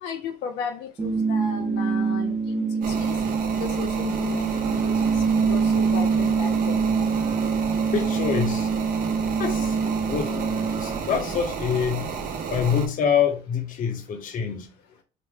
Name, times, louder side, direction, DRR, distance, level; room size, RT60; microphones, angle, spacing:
voice 1, 0.0-3.2 3.6-6.8, left 6 dB, 90° left, 0.7 m, -35 dB
sound 1, 1.0-11.0, right 5 dB, 20° right, 0.6 m, -24 dB
sound 2, 2.8-12.9, right 6 dB, 55° right, 0.9 m, -32 dB
voice 2, 7.9-8.7 9.4-9.8 10.1-12.1 12.5-14.7, left 7 dB, 50° left, 0.9 m, -26 dB
5.1 x 2.2 x 3.3 m
cardioid pair, 110°, 17 cm